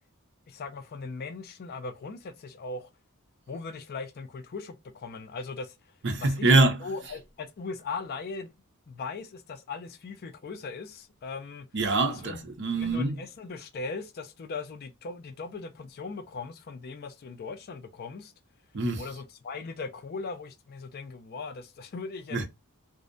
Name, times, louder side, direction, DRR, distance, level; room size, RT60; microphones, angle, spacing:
voice 1, 0.5-2.9 3.5-5.8 6.2-6.5 6.8-8.5 8.9-11.7 12.2-12.5 12.8-18.3 19.0-22.5, left 4 dB, 45° left, 0.4 m, -39 dB
voice 2, 6.0-6.8 11.7-13.2 18.7-19.1 22.3-22.5, right 2 dB, 55° right, 0.6 m, -24 dB
2.5 x 2.0 x 2.5 m
head